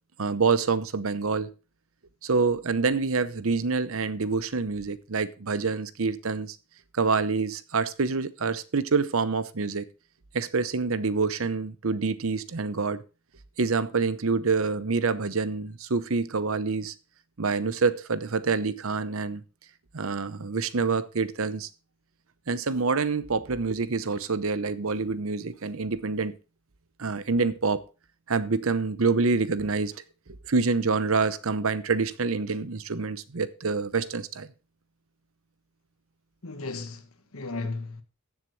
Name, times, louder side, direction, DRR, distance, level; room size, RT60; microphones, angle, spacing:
voice 1, 0.2-1.5 2.2-6.6 6.9-9.9 10.3-13.0 13.6-16.9 17.4-19.4 19.9-21.7 22.5-26.3 27.0-27.8 28.3-29.9 30.5-34.5, right 4 dB, 65° right, 0.8 m, -26 dB
voice 2, 36.4-38.0, left 3 dB, 70° left, 1.5 m, -35 dB
16.0 x 7.3 x 3.1 m
head